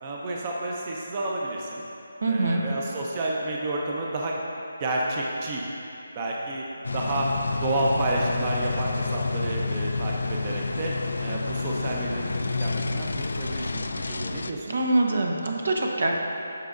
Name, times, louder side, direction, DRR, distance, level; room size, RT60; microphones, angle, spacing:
voice 1, 0.0-1.8 2.3-4.4 4.8-5.6 6.2-6.6 6.9-7.3 7.6-12.3 12.6-14.7, right 2 dB, 30° right, -3 dB, 0.7 m, -30 dB
voice 2, 2.2-2.6 14.7-16.1, right 2 dB, 70° right, 1 dB, 1.0 m, -24 dB
sound 1, 6.8-14.5, left 3 dB, 75° left, 0.4 m, -29 dB
15.0 x 5.2 x 2.6 m, 2.8 s
figure-of-eight pair, 165°, 0 cm